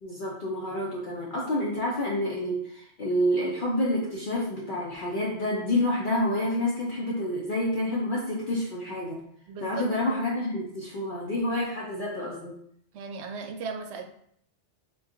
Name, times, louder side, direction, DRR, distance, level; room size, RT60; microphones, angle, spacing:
voice 1, 0.0-9.2 9.6-12.5, left 1 dB, 55° left, -5 dB, 0.8 m, -28 dB
voice 2, 9.5-9.8 12.9-14.0, right 5 dB, 75° right, 4 dB, 0.8 m, -36 dB
3.7 x 2.4 x 3.7 m, 0.68 s
omnidirectional pair, 1.2 m